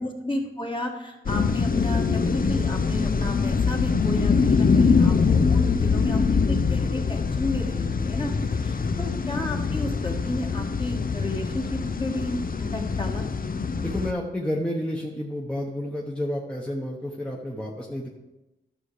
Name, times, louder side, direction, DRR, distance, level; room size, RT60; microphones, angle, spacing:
voice 1, 0.0-8.3 8.6-13.4, left 1 dB, 25° left, 0 dB, 1.8 m, -32 dB
sound 1, 1.3-14.1, left 5 dB, 45° left, 0.6 m, -23 dB
voice 2, 8.3-8.9 13.8-18.1, left 1 dB, 5° left, -2 dB, 1.1 m, -31 dB
11.5 x 6.4 x 4.9 m, 1.0 s
wide cardioid pair, 65°, 21 cm